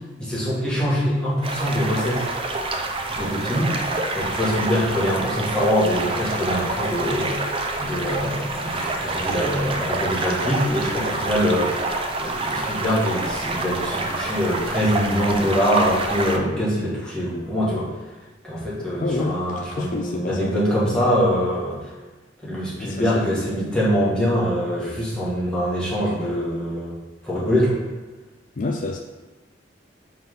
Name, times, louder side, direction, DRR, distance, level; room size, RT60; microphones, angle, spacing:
voice 1, 0.2-2.3 3.1-3.7 4.1-11.8 12.2-17.9 18.4-21.8 22.4-26.9 27.2-27.8, equal, 5° left, -9 dB, 1.9 m, -23 dB
sound 1, 1.4-16.4, right 2 dB, 30° right, 0.5 m, -27 dB
voice 2, 19.0-20.5 22.8-23.5 28.6-29.0, left 2 dB, 45° left, 2 dB, 0.4 m, -28 dB
5.8 x 3.7 x 5.4 m, 1.2 s
head